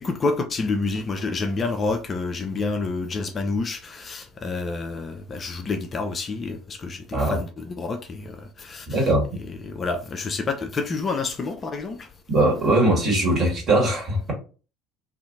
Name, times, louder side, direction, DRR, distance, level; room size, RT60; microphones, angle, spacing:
voice 1, 0.0-9.1 9.5-12.1, left 3 dB, 30° left, 0.4 m, -28 dB
voice 2, 8.9-9.4 12.3-14.3, right 1 dB, 35° right, 1.5 m, -21 dB
2.5 x 2.5 x 2.7 m
figure-of-eight pair, 60°, 0 cm